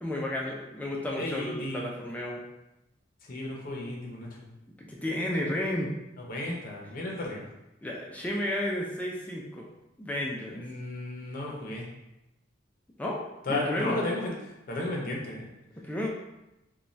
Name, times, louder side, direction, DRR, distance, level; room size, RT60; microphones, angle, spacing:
voice 1, 0.0-2.4 4.8-5.9 7.8-9.7 10.0-10.6 13.0-14.0 15.9-16.1, left 1 dB, 10° left, -2 dB, 0.3 m, -32 dB
voice 2, 1.2-1.9 3.3-4.5 6.3-7.5 10.5-11.8 13.5-14.3 14.7-15.5, left 2 dB, 50° left, -2 dB, 0.6 m, -34 dB
2.6 x 2.2 x 3.0 m, 0.92 s
head